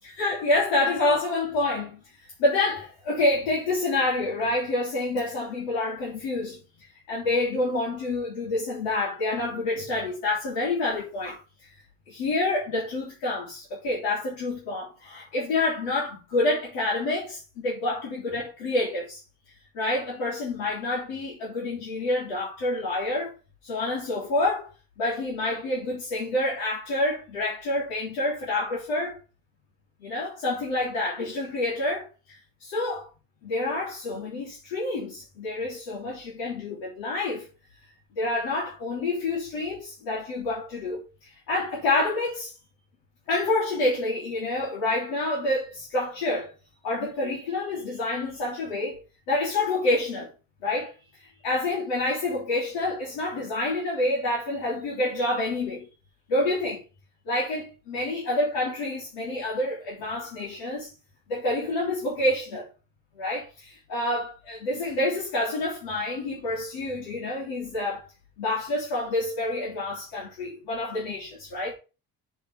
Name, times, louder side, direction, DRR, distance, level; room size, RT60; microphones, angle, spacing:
voice 1, 0.0-11.8 12.1-19.2 19.7-23.3 23.6-24.7 25.0-29.2 30.0-33.1 33.4-37.5 38.1-42.6 43.3-46.5 46.8-49.0 49.3-50.3 50.6-55.9 56.3-56.8 57.2-60.9 61.3-62.7 63.1-68.1 68.4-71.7, left 2 dB, 85° left, 3.4 m, -28 dB
7.1 x 4.5 x 5.8 m
supercardioid pair, 55°, 41 cm